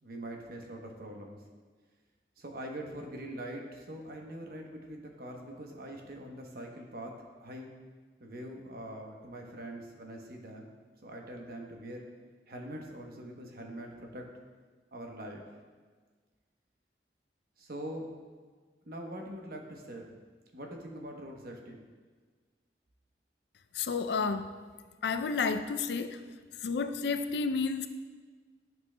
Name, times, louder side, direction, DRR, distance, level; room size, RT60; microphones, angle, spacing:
voice 1, 0.0-1.4 2.4-7.7 8.2-10.7 11.0-12.1 12.5-14.2 14.9-15.5 17.6-18.1 18.8-20.1 20.5-21.8, right 1 dB, 55° right, 1 dB, 0.9 m, -43 dB
voice 2, 23.8-24.5 25.0-26.2 26.6-27.9, left 5 dB, 70° left, 9 dB, 0.4 m, -31 dB
12.0 x 6.0 x 2.2 m, 1.5 s
head